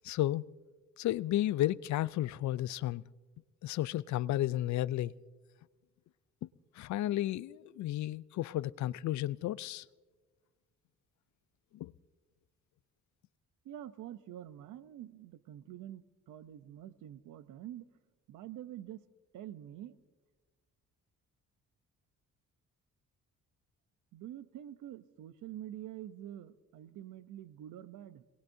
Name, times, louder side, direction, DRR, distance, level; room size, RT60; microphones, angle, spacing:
voice 1, 0.0-0.4 1.0-3.0 3.6-5.1 6.4-6.5 6.8-9.8 11.7-11.9, left 14 dB, 70° left, 0.5 m, -33 dB
voice 2, 13.6-17.9 18.3-19.0 19.3-20.0 24.1-28.2, right 12 dB, 85° right, 0.8 m, -46 dB
27.0 x 19.5 x 2.7 m
cardioid pair, 90°, 30 cm